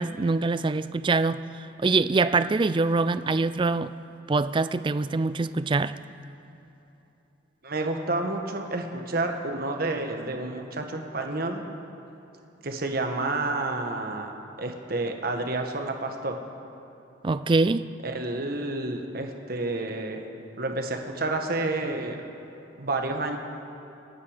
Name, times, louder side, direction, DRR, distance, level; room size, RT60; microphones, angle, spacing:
voice 1, 0.0-1.4 1.8-3.9 4.3-5.9 17.2-17.9, right 3 dB, 25° right, 14 dB, 0.4 m, -24 dB
voice 2, 7.6-11.6 12.6-14.3 14.6-16.4 18.0-20.2 20.6-22.2 22.8-23.4, right 2 dB, 50° right, 4 dB, 1.4 m, -29 dB
27.5 x 9.5 x 5.1 m, 3.0 s
head